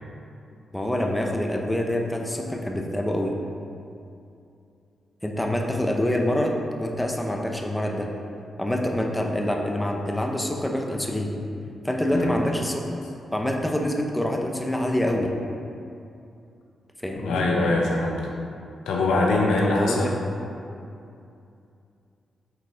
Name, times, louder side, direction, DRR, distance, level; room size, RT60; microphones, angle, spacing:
voice 1, 0.7-3.4 5.2-8.1 8.6-11.4 11.8-12.8 13.3-15.3 17.0-17.5 19.6-20.1, left 1 dB, 10° left, 1 dB, 0.9 m, -26 dB
voice 2, 17.2-18.3 18.9-20.2, left 2 dB, 85° left, -1 dB, 0.7 m, -23 dB
8.4 x 4.1 x 3.6 m, 2.6 s
supercardioid pair, 45°, 0 cm